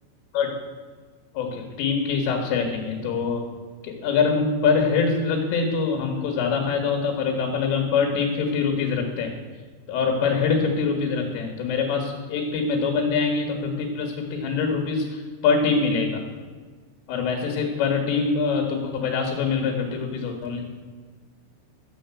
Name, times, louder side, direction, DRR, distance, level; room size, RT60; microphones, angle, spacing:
voice 1, 1.3-3.5 3.8-9.3 9.9-16.2 17.1-20.7, left 5 dB, 80° left, 2 dB, 4.2 m, -24 dB
13.0 x 7.8 x 8.3 m, 1.5 s
omnidirectional pair, 5.7 m